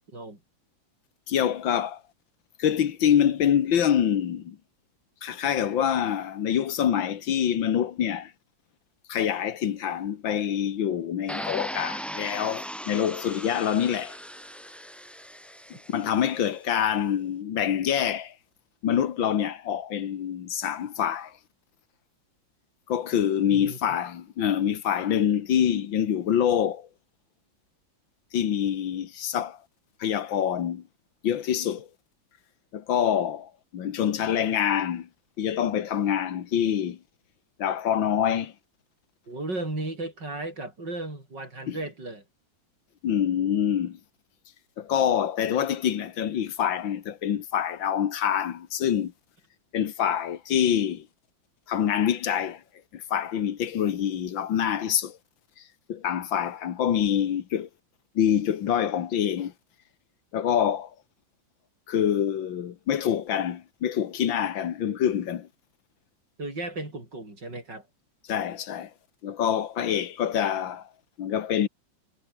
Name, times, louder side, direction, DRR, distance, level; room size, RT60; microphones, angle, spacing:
voice 1, 1.3-2.0 2.6-4.6 5.2-8.3 9.1-14.2 15.9-18.3 18.8-21.3 22.9-26.9 28.3-29.6 30.0-30.8 31.2-31.9 32.7-35.1 35.4-37.0 37.6-38.5 41.7-41.8 43.0-44.0 44.8-49.1 49.7-51.1 51.7-52.6 52.9-55.2 55.9-57.7 58.2-59.5 60.3-60.9 61.9-65.5 68.3-68.9 69.2-70.9 71.2-71.7, left 9 dB, 80° left, 2.1 m, -26 dB
sound 1, 11.3-16.3, equal, ahead, 6.7 m, -38 dB
voice 2, 39.3-42.2 66.4-67.8, right 2 dB, 65° right, 8.3 m, -35 dB
omnidirectional pair, 2.1 m